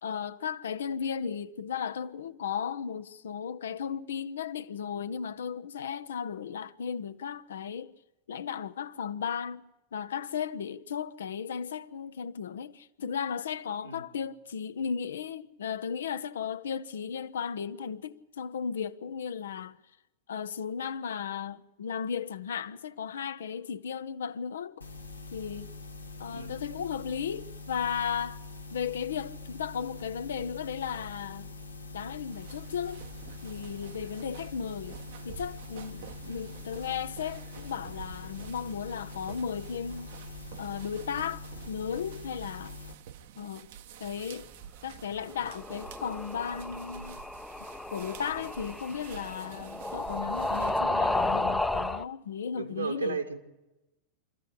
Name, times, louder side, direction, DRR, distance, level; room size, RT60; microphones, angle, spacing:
voice 1, 0.0-7.9 8.3-9.6 9.9-19.8 20.3-24.8 25.3-25.7 26.2-28.4 28.7-31.6 31.9-33.0 33.4-35.0 35.2-40.1 40.6-42.8 43.4-43.7 44.0-44.5 44.8-47.2 47.9-53.2, left 7 dB, 65° left, 0.7 m, -35 dB
sound 1, 24.8-42.9, left 3 dB, 80° left, 1.4 m, -44 dB
voice 2, 26.3-26.6 36.2-36.6 52.6-53.4, right 6 dB, 75° right, 2.0 m, -36 dB
sound 2, 32.3-50.8, right 9 dB, 55° right, 1.0 m, -49 dB
sound 3, 45.3-52.0, left 2 dB, 5° left, 0.7 m, -32 dB
24.5 x 14.5 x 8.4 m
figure-of-eight pair, 90°, 0 cm